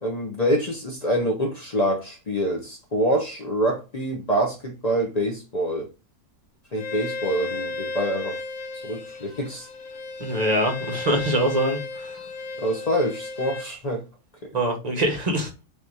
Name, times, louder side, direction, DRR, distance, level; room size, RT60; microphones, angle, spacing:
voice 1, 0.0-5.9 6.7-8.4 8.8-9.7 12.6-14.0 14.4-14.5, right 1 dB, 40° left, 0.6 m, -26 dB
Bowed string instrument, 6.7-13.7, left 3 dB, 80° left, 1.5 m, -34 dB
voice 2, 10.2-12.2 14.5-15.5, right 1 dB, 30° right, 0.9 m, -24 dB
3.4 x 2.8 x 4.6 m
omnidirectional pair, 1.6 m